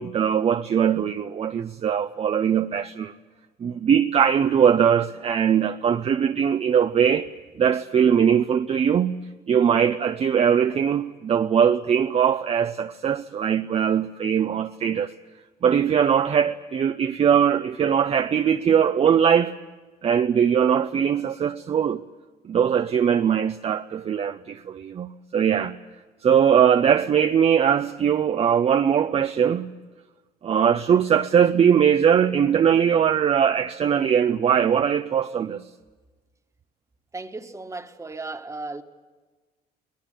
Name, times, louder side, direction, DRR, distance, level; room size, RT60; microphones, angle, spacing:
voice 1, 0.0-3.1 3.6-7.3 7.6-9.2 9.5-15.1 15.6-19.5 20.0-22.0 22.4-25.8 26.2-29.7 30.4-35.6, right 8 dB, 35° right, 0.7 m, -21 dB
voice 2, 37.1-38.8, right 3 dB, 15° right, 1.6 m, -35 dB
22.0 x 20.5 x 10.0 m
cardioid pair, 110°, 17 cm